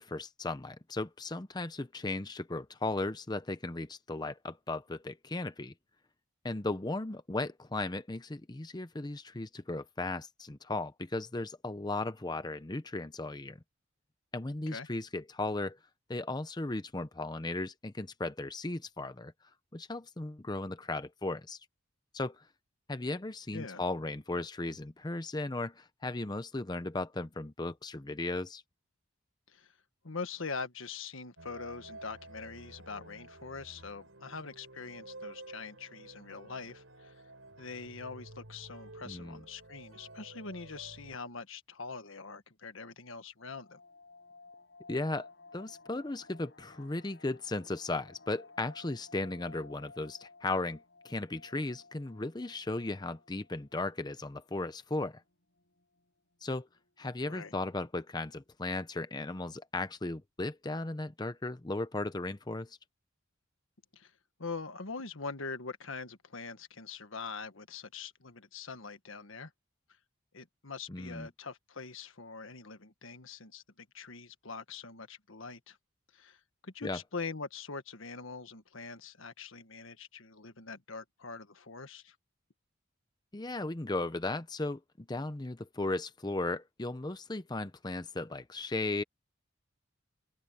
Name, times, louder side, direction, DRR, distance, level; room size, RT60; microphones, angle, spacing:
voice 1, 0.0-5.7 6.4-13.6 14.3-15.8 16.1-19.3 19.7-21.6 22.1-22.5 22.9-28.6 39.0-39.4 44.9-45.3 45.5-55.2 56.4-56.7 57.0-62.8 70.9-71.3 76.8-77.0 83.3-89.0, left 2 dB, 20° left, 0.7 m, -36 dB
voice 2, 30.0-37.1 37.6-43.8 57.3-57.5 63.9-64.1 64.4-69.5 70.3-75.8 76.1-82.1, left 4 dB, 75° left, 1.5 m, -43 dB
sound 1, 31.4-41.2, right 2 dB, 75° right, 5.0 m, -51 dB
sound 2, 43.4-54.2 54.5-54.6 54.9-55.1 55.6-56.0 56.5-56.6 56.8-57.3 57.6-57.7, left 3 dB, 60° left, 7.7 m, -56 dB
open air
head